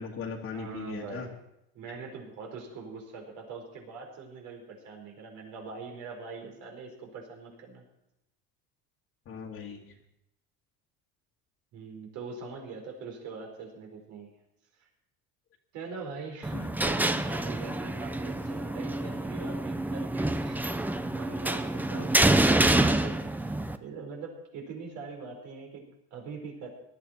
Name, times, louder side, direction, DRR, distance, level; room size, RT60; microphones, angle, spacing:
voice 1, 0.0-1.3 9.3-9.9 16.5-16.7 21.9-22.0, left 6 dB, 45° left, -3 dB, 1.9 m, -39 dB
voice 2, 0.5-1.4 1.7-7.8 11.7-14.3 14.8-14.9 15.7-20.6 21.1-26.7, right 4 dB, 65° right, 2 dB, 4.7 m, -43 dB
sound 1, 16.4-23.8, right 1 dB, 5° right, 0.7 m, -27 dB
18.0 x 12.5 x 4.5 m, 0.84 s
cardioid pair, 125°, 31 cm